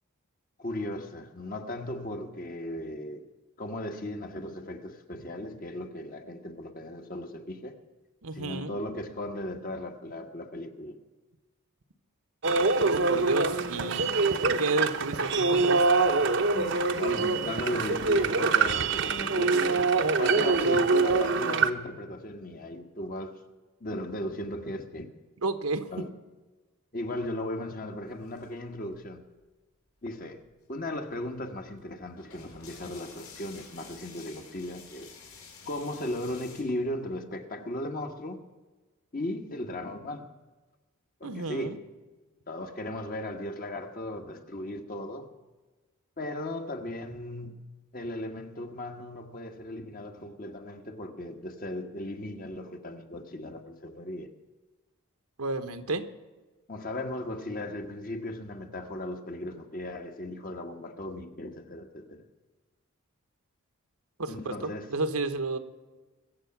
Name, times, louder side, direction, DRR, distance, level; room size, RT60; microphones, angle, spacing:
voice 1, 0.6-3.3 3.6-7.8 8.3-11.0 16.5-19.9 20.2-23.4 23.8-25.1 25.9-26.1 26.9-29.2 30.0-35.1 35.6-38.4 39.1-40.3 41.2-41.8 42.5-45.3 46.2-47.6 47.9-54.3 56.7-62.2 64.3-64.9, left 1 dB, 40° left, 1.3 m, -37 dB
voice 2, 8.2-8.8 12.7-14.1 14.6-15.9 20.1-20.5 25.4-25.9 41.2-41.8 55.4-56.1 64.2-65.6, right 3 dB, 80° right, 1.1 m, -31 dB
sound 1, 12.4-21.7, right 3 dB, 55° right, 0.8 m, -25 dB
sound 2, 28.1-29.4 30.0-30.1 30.3-36.6, left 5 dB, 85° left, 4.4 m, -50 dB
23.0 x 7.7 x 5.9 m
head